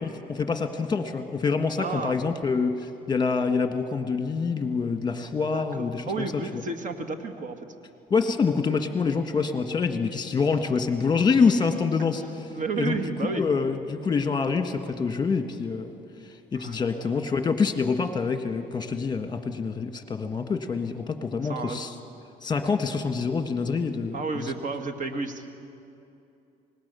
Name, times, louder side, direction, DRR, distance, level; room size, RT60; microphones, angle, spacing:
voice 1, 0.0-6.2 8.1-12.5 12.8-13.0 13.2-15.9 16.5-21.9 22.4-24.5, left 5 dB, 25° left, 7 dB, 1.6 m, -26 dB
voice 2, 1.8-2.2 5.5-7.6 12.5-13.5 16.5-17.2 21.4-21.8 24.1-25.4, right 4 dB, 50° right, 6 dB, 1.9 m, -32 dB
25.0 x 19.5 x 6.9 m, 2.7 s
cardioid pair, 110°, 17 cm